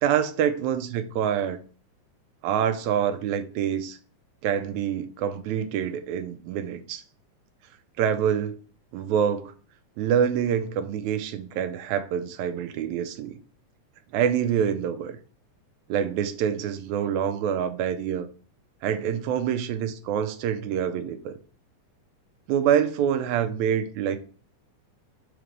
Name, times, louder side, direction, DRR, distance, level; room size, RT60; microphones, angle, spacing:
voice 1, 0.0-1.6 2.4-4.0 4.4-7.0 8.0-8.6 8.9-9.5 10.0-13.4 14.1-15.2 15.9-18.3 18.8-21.4 22.5-24.2, right 8 dB, 75° right, 1.9 m, -26 dB
5.8 x 3.2 x 5.1 m
omnidirectional pair, 3.5 m